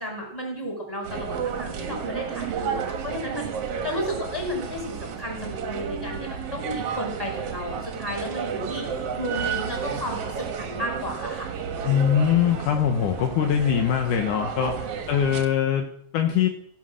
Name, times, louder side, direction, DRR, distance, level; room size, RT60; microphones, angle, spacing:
voice 1, 0.0-11.5, equal, 5° left, -1 dB, 4.9 m, -33 dB
sound 1, 1.0-15.4, right 7 dB, 55° right, 1.9 m, -32 dB
voice 2, 11.8-16.5, left 9 dB, 75° left, 4 dB, 2.4 m, -23 dB
16.5 x 8.3 x 6.3 m, 0.68 s
omnidirectional pair, 4.0 m